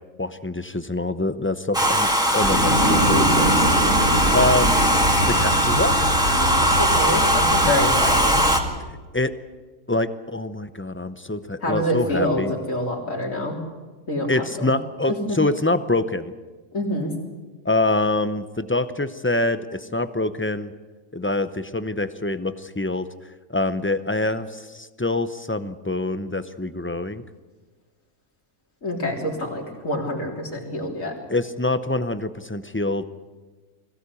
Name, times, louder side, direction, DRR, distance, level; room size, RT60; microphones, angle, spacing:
voice 1, 0.2-3.7 4.0-4.8 5.3-6.0 9.1-9.3 9.9-12.5 14.3-16.3 17.6-20.7 21.1-23.1 23.5-27.2 31.3-33.0, left 2 dB, 15° left, 11 dB, 0.4 m, -25 dB
Domestic sounds home sounds, 1.7-8.6, equal, 5° right, 2.0 m, -20 dB
sound 1, 2.4-8.7, right 1 dB, 70° right, 8.3 m, -24 dB
voice 2, 6.3-8.5 11.6-13.6 14.1-14.7 16.7-17.1 28.8-31.1, left 1 dB, 70° left, 0 dB, 4.0 m, -27 dB
22.0 x 16.5 x 8.3 m, 1.3 s
omnidirectional pair, 1.4 m